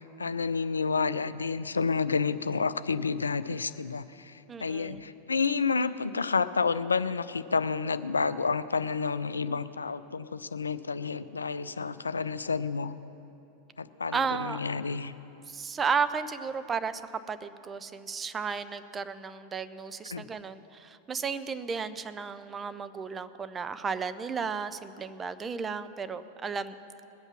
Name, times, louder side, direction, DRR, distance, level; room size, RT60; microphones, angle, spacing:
voice 1, 0.0-12.9 13.8-15.1 20.1-20.3, left 5 dB, 75° left, 14 dB, 0.4 m, -30 dB
voice 2, 4.5-5.1 14.1-14.6 15.5-17.0 17.3-26.7, right 5 dB, 20° right, 11 dB, 0.6 m, -33 dB
20.5 x 8.0 x 5.9 m, 2.8 s
figure-of-eight pair, 90°, 0 cm